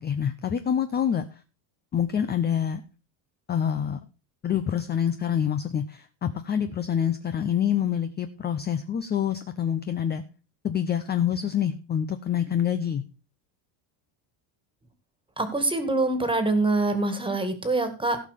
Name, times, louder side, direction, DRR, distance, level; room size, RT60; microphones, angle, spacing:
voice 1, 0.0-1.4 1.9-2.8 3.5-4.0 4.4-10.2 10.6-13.0, left 9 dB, 20° left, 10 dB, 0.5 m, -26 dB
voice 2, 15.4-18.2, right 2 dB, 10° right, 9 dB, 1.9 m, -25 dB
16.0 x 5.6 x 5.0 m, 0.33 s
cardioid pair, 135°, 50 cm